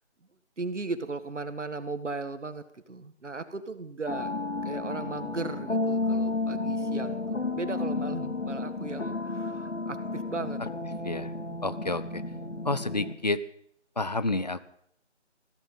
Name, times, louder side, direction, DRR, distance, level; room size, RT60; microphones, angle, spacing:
voice 1, 0.6-4.3 4.6-10.6, right 3 dB, 85° right, 11 dB, 1.8 m, -37 dB
sound 1, 4.1-13.1, left 3 dB, 80° left, 2.4 m, -32 dB
voice 2, 11.6-12.2 12.6-13.4 14.0-14.6, left 2 dB, 35° left, 15 dB, 0.7 m, -29 dB
15.5 x 14.5 x 5.5 m, 0.68 s
figure-of-eight pair, 175°, 35 cm